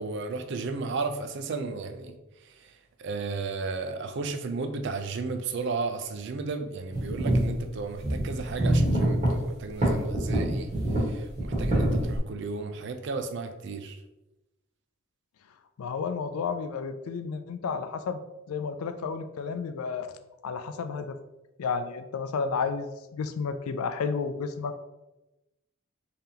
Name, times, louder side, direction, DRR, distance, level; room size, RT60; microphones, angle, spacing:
voice 1, 0.0-2.2 2.6-2.7 3.0-10.7 11.0-14.0, right 4 dB, 55° right, 7 dB, 0.4 m, -34 dB
sound 1, 6.9-7.5 8.0-9.3 9.8-11.0 11.3-12.2, right 1 dB, 35° right, 1.3 m, -25 dB
voice 2, 15.8-18.2 18.5-20.1 20.4-21.2 21.6-24.8, left 5 dB, 85° left, 10 dB, 0.4 m, -32 dB
3.7 x 3.4 x 2.8 m, 0.98 s
head